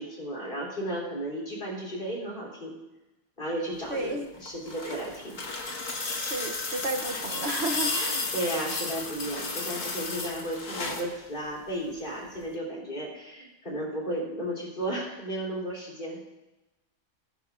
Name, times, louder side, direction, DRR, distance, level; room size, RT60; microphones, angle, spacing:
voice 1, 0.0-2.8 3.4-5.4 7.9-16.2, right 1 dB, 40° left, -3 dB, 3.6 m, -34 dB
voice 2, 3.9-4.3 4.8-5.0 6.2-8.2, right 2 dB, 60° right, 4 dB, 1.1 m, -32 dB
sound 1, 4.3-11.1 12.4-12.5, left 3 dB, 90° left, 1.9 m, -33 dB
20.0 x 10.0 x 2.5 m, 1.1 s
omnidirectional pair, 1.3 m